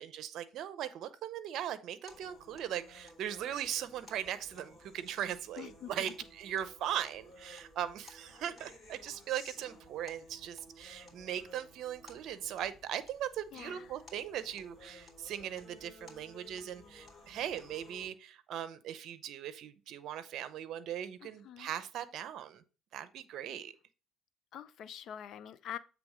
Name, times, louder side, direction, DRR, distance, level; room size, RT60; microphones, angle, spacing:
voice 1, 0.0-22.6 22.9-23.7, right 10 dB, 65° right, 0.7 m, -39 dB
sound 1, 2.1-18.1, left 1 dB, 30° left, 2.8 m, -56 dB
voice 2, 5.6-6.1 13.5-13.9 21.2-21.7 24.5-25.8, left 10 dB, 60° left, 0.5 m, -45 dB
7.7 x 3.4 x 4.9 m
cardioid pair, 100°, 0 cm